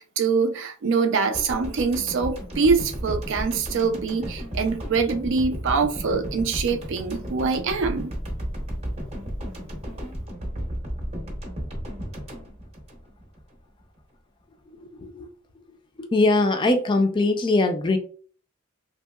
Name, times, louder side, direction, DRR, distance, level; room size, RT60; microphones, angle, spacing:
voice 1, 0.0-8.1, right 5 dB, 60° right, 0.4 m, -24 dB
sound 1, 1.3-13.5 13.8-14.0, equal, 30° right, 0.7 m, -33 dB
voice 2, 14.7-15.3 16.0-18.0, left 2 dB, 25° left, 0.4 m, -22 dB
2.9 x 2.7 x 2.3 m
head